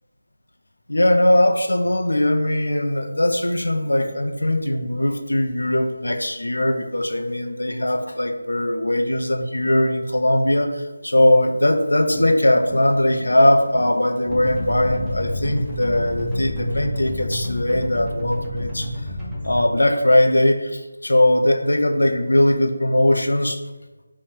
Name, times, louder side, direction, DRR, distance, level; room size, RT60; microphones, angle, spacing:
voice 1, 0.9-18.9 19.4-23.6, left 1 dB, 85° left, 5 dB, 0.4 m, -20 dB
sound 1, 11.9-16.7, equal, 35° left, 0.8 m, -39 dB
sound 2, 14.3-19.6, left 1 dB, ahead, 0.4 m, -28 dB
2.7 x 2.0 x 2.9 m, 1.1 s
figure-of-eight pair, 165°, 0 cm